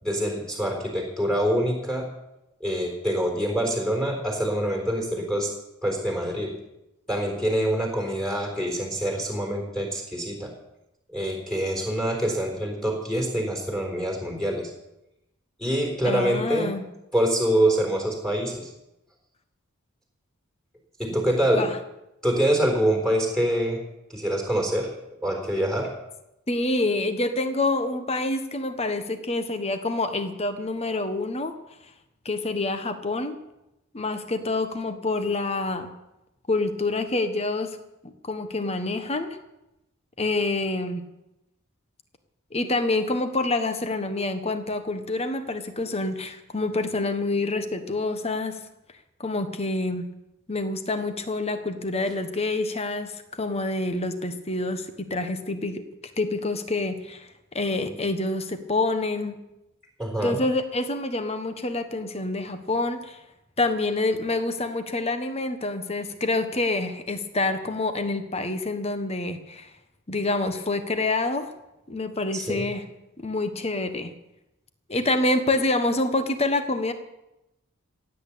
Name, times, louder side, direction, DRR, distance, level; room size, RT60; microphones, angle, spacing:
voice 1, 0.0-2.1 2.6-5.5 5.8-6.6 7.1-10.5 11.1-14.7 15.6-16.7 17.1-18.7 21.0-21.7 22.2-23.8 24.1-24.9 25.2-25.9 60.0-60.4 72.3-72.7, right 1 dB, 5° left, 1 dB, 3.9 m, -25 dB
voice 2, 16.1-16.8 21.6-21.8 26.5-31.5 32.2-33.4 33.9-35.9 36.5-37.8 38.0-39.4 40.2-41.0 42.5-48.6 49.2-50.1 50.5-55.8 56.2-59.4 60.2-63.2 63.6-69.7 70.1-71.5 71.9-72.8 73.2-74.1 74.9-76.9, left 2 dB, 30° left, 9 dB, 1.2 m, -27 dB
16.5 x 8.8 x 8.5 m, 0.92 s
head